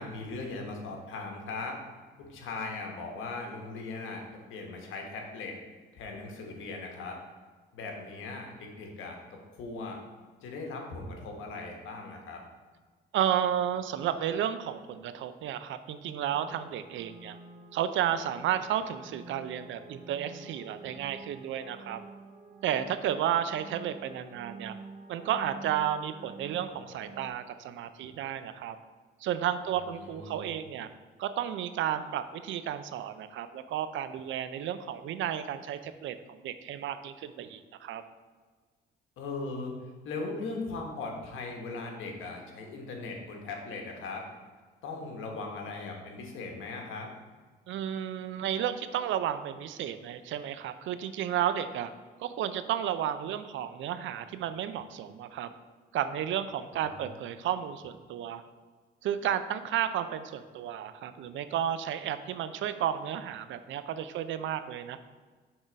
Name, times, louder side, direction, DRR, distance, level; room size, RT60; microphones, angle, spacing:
voice 1, 0.0-1.8 2.2-4.2 4.5-5.6 5.9-7.2 7.7-10.0 10.4-12.4 30.0-30.5 39.2-39.7 40.0-44.2 44.8-47.1 56.9-57.0, left 3 dB, 85° left, 2 dB, 1.2 m, -39 dB
voice 2, 13.1-17.4 17.7-22.0 22.6-24.7 25.1-28.8 29.2-30.9 31.2-38.0 47.7-51.9 52.2-55.5 55.9-58.4 59.0-65.0, right 10 dB, 75° right, 11 dB, 0.5 m, -32 dB
sound 1, 16.3-27.3, right 3 dB, 35° right, 0.8 m, -48 dB
6.1 x 3.8 x 5.1 m, 1.4 s
cardioid pair, 90°, 20 cm